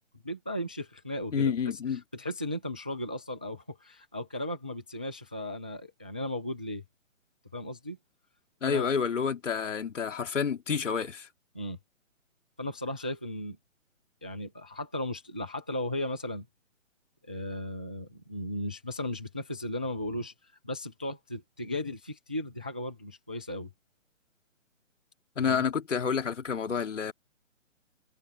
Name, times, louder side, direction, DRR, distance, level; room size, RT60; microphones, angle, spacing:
voice 1, 0.2-1.8 2.1-6.8 7.5-8.0 8.6-8.9 11.5-11.8 12.6-13.6 14.2-16.5 17.2-20.3 20.6-23.7 25.5-25.6, left 1 dB, 5° right, 0.5 m, -36 dB
voice 2, 1.3-2.0 8.6-11.3 25.4-27.1, left 6 dB, 65° left, 3.0 m, -29 dB
hypercardioid pair, 165°, 39 cm